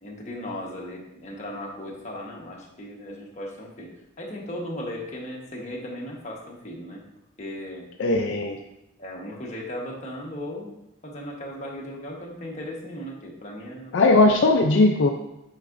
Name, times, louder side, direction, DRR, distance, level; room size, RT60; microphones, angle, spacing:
voice 1, 0.0-3.9 4.2-7.0 7.4-7.9 9.0-10.7 11.0-14.1, left 1 dB, 35° left, -2 dB, 1.1 m, -36 dB
voice 2, 8.0-8.6 13.9-15.1, left 2 dB, 60° left, 2 dB, 0.4 m, -18 dB
8.0 x 4.7 x 2.5 m, 0.88 s
head